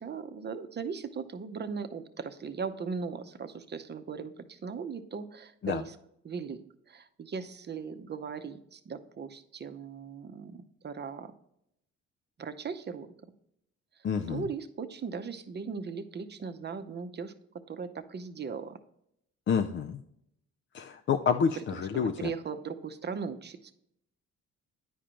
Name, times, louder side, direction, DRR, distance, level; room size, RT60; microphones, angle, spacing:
voice 1, 0.0-6.0 6.2-6.6 6.9-11.3 12.4-13.1 14.3-17.3 17.7-18.8 21.5-23.7, right 5 dB, 35° right, 10 dB, 0.7 m, -38 dB
voice 2, 14.0-14.4 19.5-20.0 20.7-22.3, left 6 dB, 40° left, 6 dB, 0.4 m, -28 dB
10.0 x 4.9 x 2.9 m, 0.76 s
cardioid pair, 90°, 30 cm